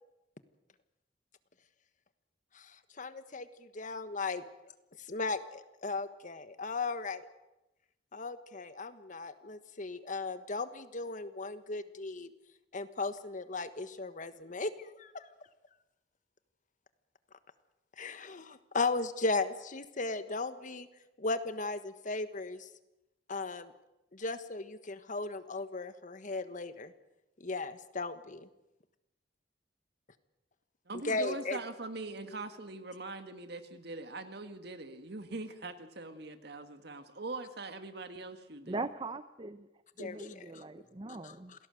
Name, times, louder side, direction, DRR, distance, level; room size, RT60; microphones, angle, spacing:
voice 1, 3.0-3.5 3.7-4.4 5.1-7.2 8.1-12.3 12.7-14.7 15.0-15.2 18.0-20.9 21.2-22.7 23.3-23.7 24.1-26.9 27.4-28.1 31.0-31.6 40.0-40.4 41.2-41.3, left 3 dB, 45° left, 11 dB, 1.4 m, -36 dB
voice 2, 30.9-38.8, right 2 dB, 65° right, 8 dB, 2.0 m, -42 dB
voice 3, 38.7-39.7 40.0-41.5, right 3 dB, 30° right, 12 dB, 0.8 m, -40 dB
27.0 x 18.0 x 7.8 m, 0.95 s
head